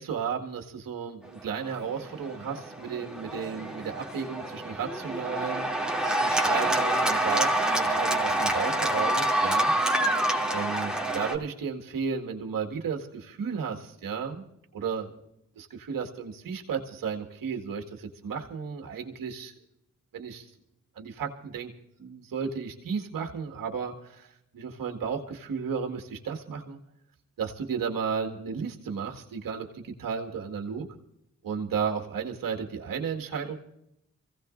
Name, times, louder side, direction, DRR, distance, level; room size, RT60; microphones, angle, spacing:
voice 1, 0.0-5.7 6.2-9.7 10.5-14.5 14.7-15.1 15.6-19.5 20.1-20.5 21.0-21.7 22.0-26.8 27.4-30.9 31.4-33.6, right 6 dB, 80° right, 3 dB, 1.9 m, -33 dB
Cheering / Applause, 1.7-11.4, right 1 dB, ahead, 2.7 m, -27 dB
25.5 x 16.5 x 2.6 m, 0.79 s
supercardioid pair, 40°, 33 cm